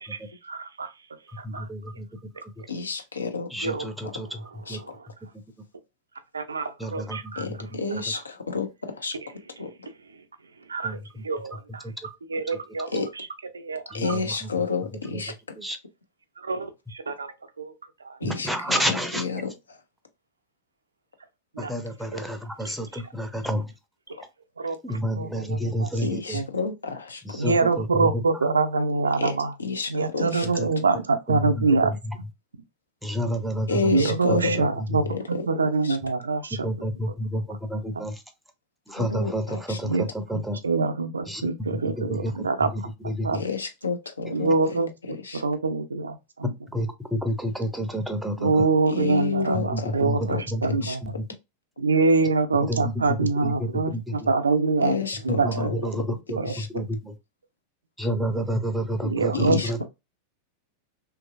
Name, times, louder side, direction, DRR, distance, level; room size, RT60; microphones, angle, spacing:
voice 1, 0.0-0.9 1.4-1.7 3.6-5.1 6.3-7.5 8.1-8.2 9.2-9.3 10.1-10.2 10.7-11.8 12.3-13.3 13.5-14.1 16.4-17.7 18.0-18.2 21.5-21.7 22.1-22.2 22.6-23.0 24.1-24.2 24.6-26.0 26.3-26.5 27.3-29.5 29.9-32.3 33.9-37.4 37.7-38.1 39.8-40.1 40.3-42.8 43.0-43.4 44.3-46.5 48.4-51.0 51.8-55.0 55.2-55.9 56.4-56.6 59.0-59.6, right 3 dB, 75° right, 0.4 m, -26 dB
voice 2, 1.3-2.1 3.5-4.3 4.7-4.8 6.8-7.6 10.8-11.0 11.8-12.1 13.9-14.3 15.1-15.2 15.6-15.8 18.2-19.2 21.6-23.7 24.8-26.4 27.3-28.1 30.6-30.7 31.3-31.4 31.8-31.9 33.0-33.9 34.3-34.4 36.6-38.2 38.9-39.9 40.3-40.6 41.3-41.4 41.8-42.3 43.0-43.4 46.7-48.6 49.5-50.2 50.5-50.6 51.0-51.1 52.7-53.0 53.4-54.0 55.3-56.4 56.7-57.1 58.0-59.8, equal, ahead, 0.5 m, -29 dB
voice 3, 2.7-3.5 4.7-4.8 7.4-9.2 9.6-9.7 12.9-13.1 13.9-15.3 18.2-19.8 24.2-24.3 26.0-27.4 29.2-30.5 33.7-34.6 35.1-35.2 35.8-36.0 39.0-39.8 43.3-44.5 45.2-45.4 48.9-50.0 50.3-50.4 50.8-51.0 54.8-56.0 56.5-56.7 59.3-59.8, left 4 dB, 75° left, 0.5 m, -30 dB
2.9 x 2.6 x 2.5 m
figure-of-eight pair, 90°, 0 cm